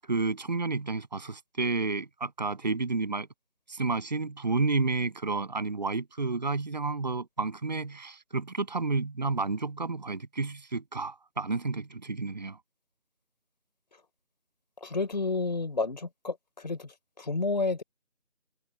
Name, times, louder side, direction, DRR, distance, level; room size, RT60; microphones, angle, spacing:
voice 1, 0.0-3.3 3.7-12.6, right 3 dB, 35° right, 7.6 m, -31 dB
voice 2, 14.8-17.8, left 3 dB, 35° left, 4.4 m, -31 dB
figure-of-eight pair, 170°, 37 cm